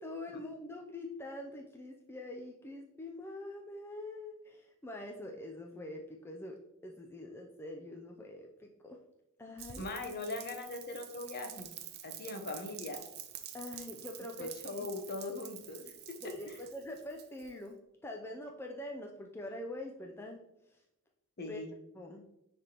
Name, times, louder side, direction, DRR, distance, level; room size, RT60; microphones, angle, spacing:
voice 1, 0.0-6.6 6.8-9.0 9.4-9.9 13.5-14.9 16.2-17.8 18.0-20.4 20.7-20.8 21.5-21.6 21.9-22.3, left 1 dB, 10° left, 1 dB, 0.4 m, -44 dB
Rain, 9.6-17.7, right 10 dB, 45° right, 0.5 m, -48 dB
voice 2, 9.8-11.7 12.0-13.0 14.4-15.8 21.4-21.7, left 2 dB, 45° left, 5 dB, 0.9 m, -40 dB
9.8 x 3.4 x 2.9 m, 0.87 s
head